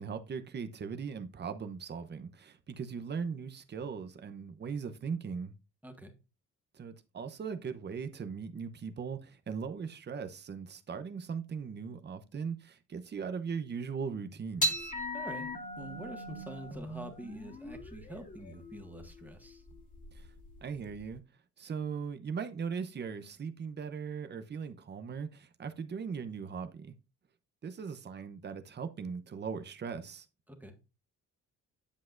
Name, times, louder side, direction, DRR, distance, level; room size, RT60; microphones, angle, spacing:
voice 1, 0.0-5.5 6.7-14.9 20.1-20.3 20.6-21.2 21.6-26.9 27.6-30.3, right 6 dB, 35° right, 0.8 m, -39 dB
sound 1, 14.6-21.1, equal, 25° left, 2.0 m, -38 dB
voice 2, 15.1-19.6 30.5-30.7, right 1 dB, 5° right, 1.6 m, -46 dB
8.4 x 7.4 x 2.5 m
cardioid pair, 90°, 30 cm